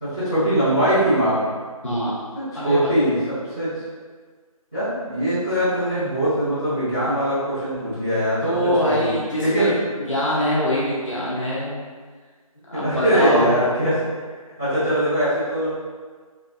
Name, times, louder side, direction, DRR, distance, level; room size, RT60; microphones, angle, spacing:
voice 1, 0.0-1.4 2.3-3.7 4.7-9.1 9.4-9.8 12.7-14.0 14.6-15.7, right 1 dB, 10° left, -21 dB, 0.8 m, -22 dB
voice 2, 2.5-2.9 8.4-11.8 12.7-13.4, equal, 55° left, -8 dB, 1.0 m, -23 dB
3.2 x 2.4 x 2.4 m, 1.5 s
figure-of-eight pair, 175°, 19 cm